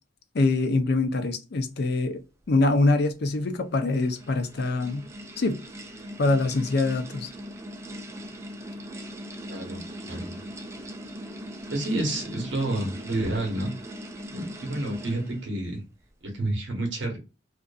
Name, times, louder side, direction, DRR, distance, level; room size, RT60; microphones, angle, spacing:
voice 1, 0.3-2.2 2.5-5.0 5.4-5.6 6.2-7.3, left 2 dB, 55° left, 0.5 m, -24 dB
sound 1, 3.4-15.5, equal, 15° right, 0.4 m, -40 dB
voice 2, 9.5-10.4 11.7-13.7 14.3-15.8 16.3-17.2, right 1 dB, 70° right, 1.1 m, -29 dB
2.6 x 2.5 x 2.2 m
head